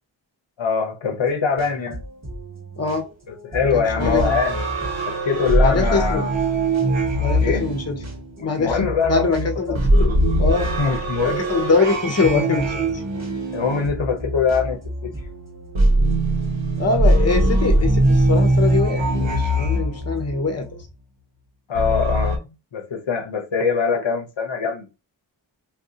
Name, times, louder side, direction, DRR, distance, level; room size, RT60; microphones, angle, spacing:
voice 1, 0.6-2.0 3.4-4.6 5.1-6.3 7.4-7.7 8.4-10.1 10.8-11.4 13.5-15.1 21.7-22.4 22.7-24.9, left 5 dB, 85° left, 0.8 m, -23 dB
sound 1, 1.2-20.8, equal, 35° right, 1.2 m, -36 dB
voice 2, 2.8-3.1 3.7-4.3 5.6-6.2 7.2-7.9 8.4-8.8 9.1-10.1 10.4-10.7 11.2-13.0 16.8-20.7, left 4 dB, 35° left, 0.8 m, -23 dB
sound 2, 4.0-8.6 9.7-14.5 15.8-20.4 21.8-22.4, right 1 dB, 85° right, 0.8 m, -21 dB
2.6 x 2.3 x 3.7 m
wide cardioid pair, 40°, 45 cm